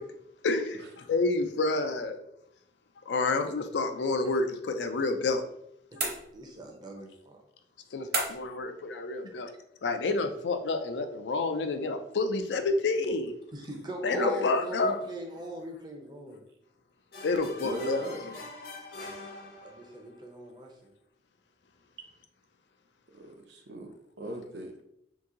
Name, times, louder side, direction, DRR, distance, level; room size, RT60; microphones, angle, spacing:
voice 1, 0.4-2.2 3.1-5.4 7.9-9.5 9.8-13.3 14.0-15.0 17.2-18.3, left 3 dB, 90° left, 7 dB, 0.4 m, -29 dB
sound 1, 6.0-6.7 8.1-8.6, right 3 dB, 60° right, 1.0 m, -33 dB
voice 2, 6.3-7.4 8.2-8.3 13.5-16.4 19.6-20.9, right 1 dB, 25° right, 2 dB, 0.5 m, -40 dB
sound 2, 17.1-20.1, left 2 dB, 55° left, 0.7 m, -43 dB
voice 3, 17.6-18.2 22.0-22.1 23.1-23.9 24.2-24.8, right 2 dB, 75° right, 3 dB, 0.6 m, -38 dB
2.9 x 2.6 x 3.6 m, 0.75 s
head